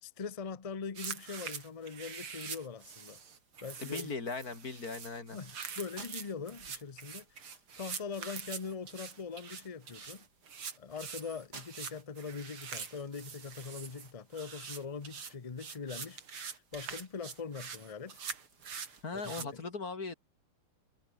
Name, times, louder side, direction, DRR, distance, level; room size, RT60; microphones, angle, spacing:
voice 1, 0.0-3.2 3.6-4.1 5.3-10.2 10.7-16.2 16.5-18.2 19.1-19.6, left 5 dB, 70° left, 0.3 m, -42 dB
sound 1, 1.0-19.5, right 6 dB, 75° right, 3.5 m, -44 dB
sound 2, 1.2-19.6, right 4 dB, 50° right, 3.8 m, -60 dB
voice 2, 3.8-5.4 19.0-20.1, left 4 dB, 45° left, 3.5 m, -39 dB
omnidirectional pair, 2.3 m